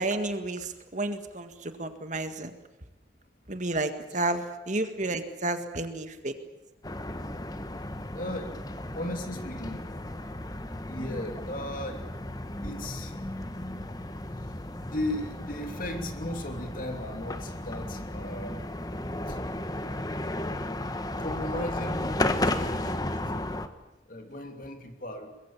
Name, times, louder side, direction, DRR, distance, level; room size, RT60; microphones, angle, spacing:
voice 1, 0.0-2.5 3.5-6.3, right 2 dB, 40° right, 8 dB, 1.8 m, -31 dB
sound 1, 6.8-23.7, left 1 dB, 20° left, 1.3 m, -34 dB
voice 2, 8.1-8.5 8.9-9.8 10.8-12.1 12.6-13.1 14.9-18.6 19.3-19.4 21.2-23.5 24.1-25.4, left 1 dB, 45° left, 5 dB, 3.0 m, -36 dB
23.5 x 22.0 x 7.3 m, 1.0 s
head